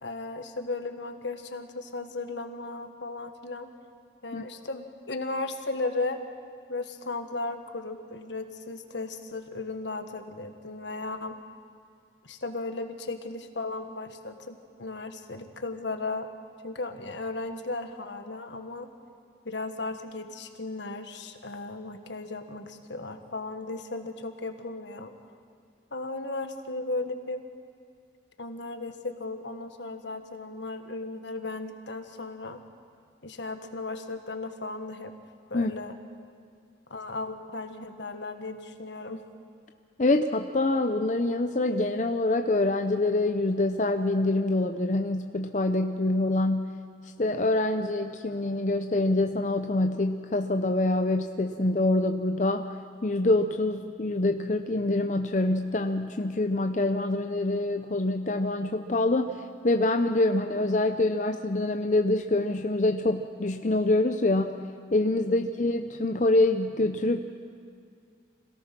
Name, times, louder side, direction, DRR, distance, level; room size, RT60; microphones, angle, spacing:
voice 1, 0.0-3.7 4.2-6.2 6.7-11.4 12.2-16.3 16.6-18.9 19.4-25.1 25.9-27.4 28.4-32.6 33.2-35.1 35.5-35.9 36.9-39.2, left 3 dB, 75° left, 7 dB, 1.5 m, -35 dB
voice 2, 40.0-46.7 47.2-52.7 53.0-64.6 64.9-67.2, left 2 dB, 40° left, 6 dB, 0.6 m, -25 dB
26.0 x 17.5 x 6.1 m, 2.3 s
head